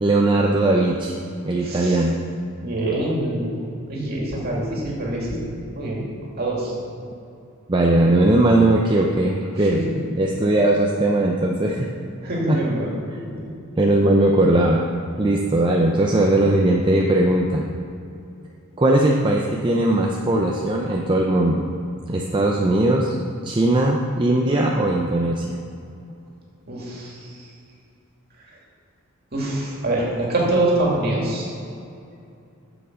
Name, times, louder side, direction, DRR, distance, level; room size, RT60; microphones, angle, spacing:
voice 1, 0.0-1.1 1.5-2.2 7.7-9.8 10.2-11.9 12.5-12.6 13.8-14.8 15.2-17.7 18.8-21.7 22.1-23.2 23.4-25.5, right 1 dB, 20° right, -1 dB, 0.6 m, -19 dB
voice 2, 1.6-2.0 2.6-3.6 3.9-6.0 6.4-6.7 9.6-9.8 12.2-12.9 26.7-27.5 29.3-31.5, right 1 dB, 45° right, -4 dB, 2.6 m, -25 dB
8.6 x 7.1 x 6.3 m, 2.5 s
head